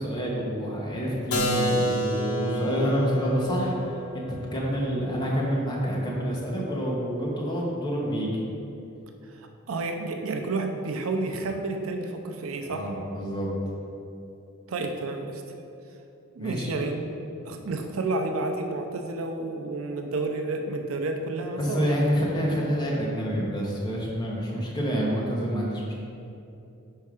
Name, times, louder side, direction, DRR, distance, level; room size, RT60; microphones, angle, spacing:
voice 1, 0.0-8.4 12.6-13.5 16.4-16.7 21.6-25.9, equal, 20° left, -4 dB, 1.1 m, -28 dB
Keyboard (musical), 1.3-6.9, equal, 85° left, 0.8 m, -30 dB
voice 2, 9.7-12.9 14.7-15.4 16.3-17.0 17.4-22.0, right 2 dB, 75° right, 4 dB, 0.5 m, -30 dB
5.5 x 4.5 x 4.8 m, 2.7 s
head